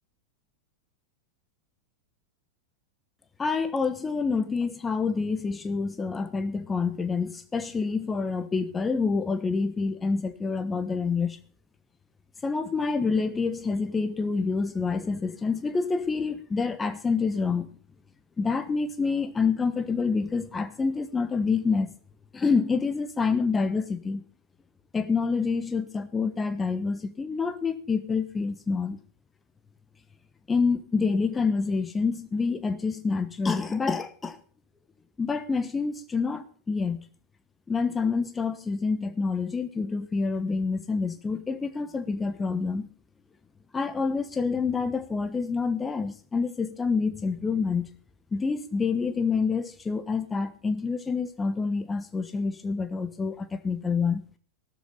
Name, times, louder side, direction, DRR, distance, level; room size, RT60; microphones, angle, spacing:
voice 1, 3.4-11.4 12.4-17.7 18.4-21.9 22.3-24.2 24.9-29.0 30.5-34.4 35.2-37.0 37.7-42.9 43.7-47.9 48.3-54.2, left 4 dB, 15° left, 1.2 m, -27 dB
14.5 x 13.0 x 4.0 m
figure-of-eight pair, 90°, 0 cm